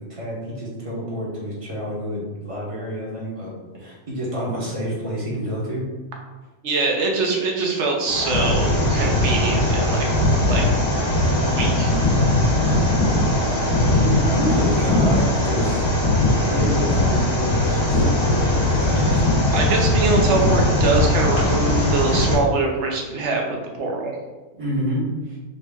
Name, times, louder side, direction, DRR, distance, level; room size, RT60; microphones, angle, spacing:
voice 1, 0.1-5.9 11.7-15.9 16.2-19.2 24.6-25.4, equal, 30° right, -5 dB, 0.8 m, -28 dB
voice 2, 6.6-10.6 11.4-11.9 19.5-24.1, right 3 dB, 65° right, 1 dB, 0.8 m, -23 dB
sound 1, 8.0-22.3, left 1 dB, 85° left, 1.5 m, -19 dB
3.9 x 2.1 x 3.4 m, 1.2 s
omnidirectional pair, 1.4 m